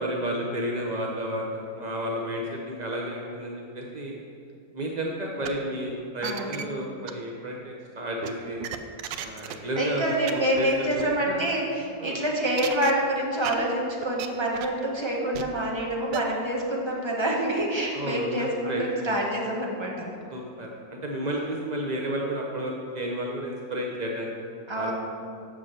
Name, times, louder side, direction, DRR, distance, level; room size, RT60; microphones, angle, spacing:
voice 1, 0.0-4.1 4.7-8.7 9.2-11.5 12.0-12.2 17.9-18.8 20.3-24.3 24.7-24.9, equal, 55° right, -1 dB, 0.4 m, -32 dB
sound 1, 5.4-5.5 6.0-6.6 7.1-7.2 8.2-9.5 9.8-9.9 10.3-10.4 10.6-10.7 10.9-11.0 12.6-12.9 13.4-13.6 14.0-14.3 14.5-14.8 15.3-15.4 16.1-16.2, right 11 dB, 80° right, 1.3 m, -33 dB
voice 2, 6.2-6.5 9.8-20.1 24.7-24.9, right 1 dB, 15° right, -3 dB, 1.2 m, -27 dB
7.2 x 6.3 x 7.3 m, 2.5 s
omnidirectional pair, 2.0 m